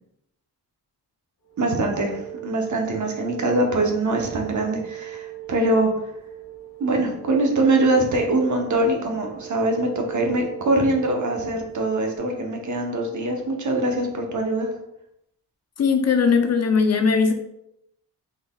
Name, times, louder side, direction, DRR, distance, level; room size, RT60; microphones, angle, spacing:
sound 1, 1.4-12.2, right 14 dB, 65° left, 1.3 m, -38 dB
voice 1, 1.6-5.9 6.8-14.7, right 2 dB, 45° right, 2 dB, 0.9 m, -23 dB
voice 2, 15.8-17.3, left 5 dB, 40° left, 5 dB, 0.5 m, -19 dB
3.6 x 3.4 x 2.3 m, 0.82 s
cardioid pair, 65°, 40 cm